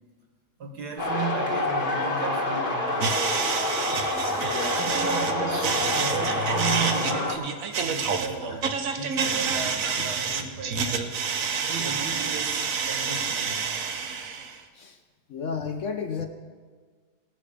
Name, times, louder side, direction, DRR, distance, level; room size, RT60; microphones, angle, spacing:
voice 1, 0.6-3.5 4.7-7.5 7.8-11.0 11.7-13.7, right 4 dB, 80° right, 3 dB, 2.0 m, -35 dB
sound 1, 1.0-7.4, left 2 dB, 35° left, 1.5 m, -27 dB
sound 2, 3.0-14.6, right 5 dB, 60° right, 1.1 m, -28 dB
voice 2, 4.5-5.0 9.8-10.1 14.8-15.0 15.3-16.3, left 5 dB, 60° left, 6 dB, 0.9 m, -33 dB
18.5 x 6.4 x 5.0 m, 1.5 s
omnidirectional pair, 1.7 m